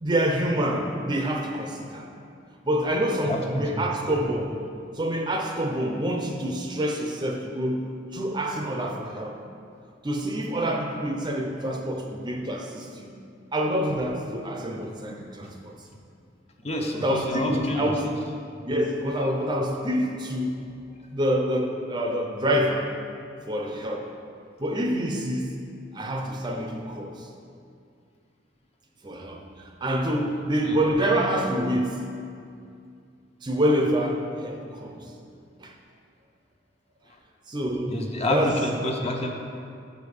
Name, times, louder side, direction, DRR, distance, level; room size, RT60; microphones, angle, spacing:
voice 1, 0.0-2.1 2.7-4.6 5.0-7.9 8.1-9.4 10.0-13.1 13.5-15.7 16.9-18.1 18.6-20.6 21.1-22.9 23.5-24.1 24.6-25.5 25.9-27.3 29.0-32.0 33.4-35.0 35.6-35.7 37.5-38.0 38.3-38.6, equal, 25° right, 1 dB, 0.6 m, -27 dB
voice 2, 3.2-3.9 15.4-15.5 16.6-18.1 30.2-30.3 30.6-30.8 37.9-39.3, left 1 dB, 35° left, 1 dB, 0.8 m, -29 dB
6.2 x 5.2 x 6.4 m, 2.4 s
head